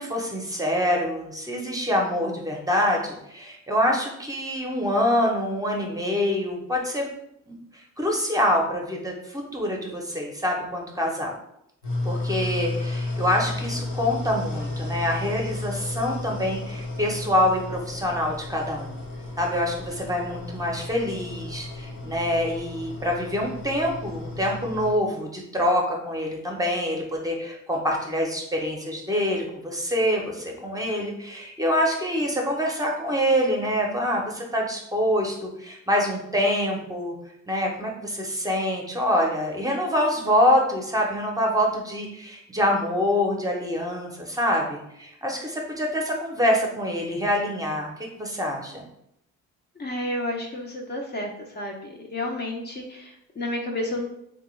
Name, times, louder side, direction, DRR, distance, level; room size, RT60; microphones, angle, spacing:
voice 1, 0.0-7.1 7.5-11.3 12.0-19.0 19.4-37.2 37.5-47.9 48.2-48.8, left 1 dB, 10° right, 0 dB, 0.6 m, -25 dB
sound 1, 11.8-24.9, left 2 dB, 90° left, 1.1 m, -33 dB
voice 2, 49.8-54.1, left 1 dB, 35° left, 1 dB, 0.6 m, -31 dB
3.2 x 2.2 x 3.1 m, 0.77 s
cardioid pair, 90°, 30 cm